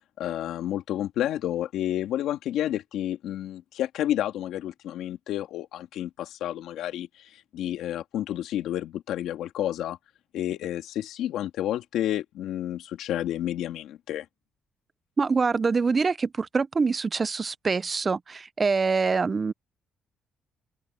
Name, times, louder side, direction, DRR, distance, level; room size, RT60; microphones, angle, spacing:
voice 1, 0.2-10.0 10.3-14.2, left 12 dB, 85° left, 2.5 m, -30 dB
voice 2, 15.2-19.5, right 4 dB, 35° right, 0.6 m, -25 dB
open air
cardioid pair, 90°, 0 cm